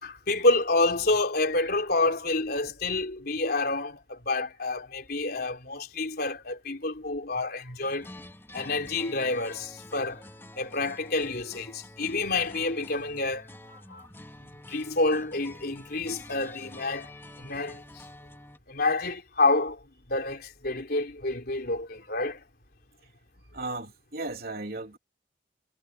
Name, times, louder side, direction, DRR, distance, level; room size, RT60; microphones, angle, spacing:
voice 1, 0.0-8.1 8.5-10.2 10.6-14.1 14.7-17.1 17.4-17.8 18.7-19.8 20.1-22.4, left 2 dB, 55° left, 3.7 m, -28 dB
sound 1, 7.8-18.6, left 1 dB, 15° left, 3.2 m, -48 dB
voice 2, 23.5-25.0, right 2 dB, 55° right, 3.4 m, -35 dB
head